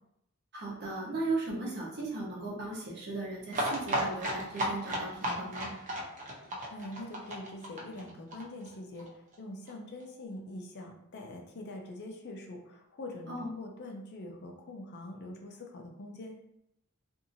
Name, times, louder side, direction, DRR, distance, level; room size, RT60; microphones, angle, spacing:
voice 1, 0.5-5.7 13.3-13.5, right 2 dB, 50° right, -4 dB, 0.9 m, -37 dB
sound 1, 3.5-9.1 9.3-9.4 9.7-9.8 10.0-10.1, equal, 35° right, 0.6 m, -34 dB
voice 2, 6.7-16.4, left 1 dB, 50° left, 2 dB, 0.5 m, -44 dB
2.7 x 2.5 x 2.6 m, 0.79 s
head